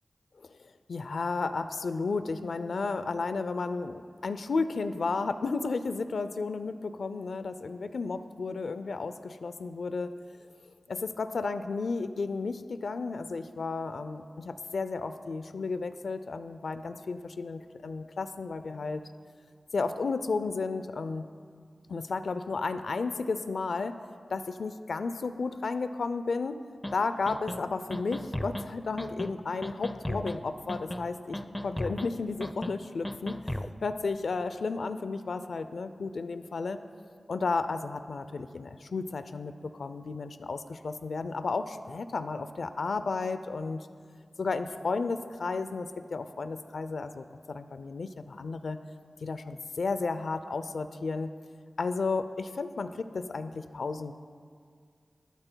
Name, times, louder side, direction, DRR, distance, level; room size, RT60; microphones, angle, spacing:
voice 1, 0.6-10.1 10.9-19.0 19.7-21.3 21.9-24.0 24.3-26.6 26.9-33.4 33.8-36.8 37.3-43.9 44.4-48.8 49.2-51.3 51.8-54.1, left 4 dB, 80° left, 10 dB, 0.5 m, -33 dB
sound 1, 26.8-26.9 27.3-27.6 27.9-28.7 29.0-29.3 29.6-30.4 30.7-31.1 31.3-32.1 32.4-32.7 33.0-33.7, left 1 dB, 15° left, 0.6 m, -35 dB
20.5 x 12.5 x 2.3 m, 2.1 s
cardioid pair, 50°, 0 cm